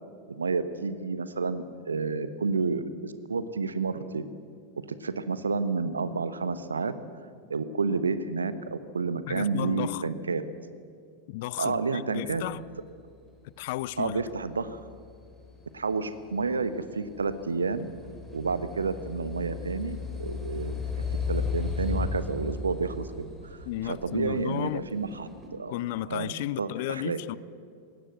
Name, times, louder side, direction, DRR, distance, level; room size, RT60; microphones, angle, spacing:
voice 1, 0.3-4.2 4.8-6.9 7.5-10.4 11.6-12.4 14.0-14.8 15.7-17.9 18.3-20.8 21.3-23.1 23.4-23.6 23.8-25.7 26.1-27.2, right 4 dB, 75° right, 1.1 m, -30 dB
voice 2, 9.3-10.1 11.3-12.6 13.6-14.2 23.6-24.9 25.7-27.4, left 16 dB, 50° left, 0.5 m, -33 dB
sound 1, 14.1-25.5, left 5 dB, 5° left, 4.0 m, -36 dB
20.0 x 16.5 x 8.0 m
figure-of-eight pair, 90°, 0 cm